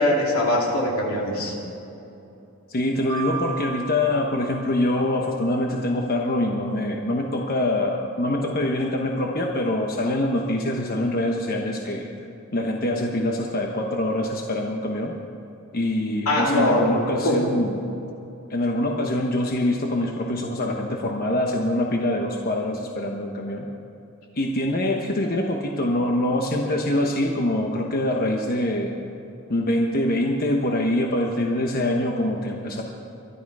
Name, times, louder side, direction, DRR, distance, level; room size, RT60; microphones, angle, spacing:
voice 1, 0.0-1.6 16.3-17.4, left 1 dB, 85° left, -1 dB, 3.0 m, -22 dB
voice 2, 2.7-12.1 12.5-15.2 15.7-17.8 18.5-23.7 24.3-28.9 29.5-32.8, left 1 dB, 45° left, 1 dB, 1.1 m, -24 dB
Mallet percussion, 3.1-5.9, right 5 dB, 20° left, 3.0 m, -36 dB
23.5 x 11.5 x 4.8 m, 2.9 s
head